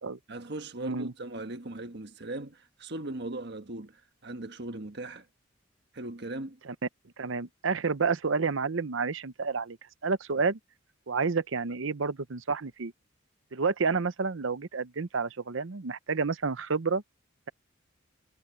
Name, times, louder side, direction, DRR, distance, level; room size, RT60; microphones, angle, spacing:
voice 1, 0.3-5.3 5.9-6.6, right 2 dB, 55° right, 1.5 m, -39 dB
voice 2, 0.8-1.1 7.2-9.8 10.0-10.6 11.1-12.9 13.5-17.0, right 4 dB, 70° right, 0.8 m, -29 dB
head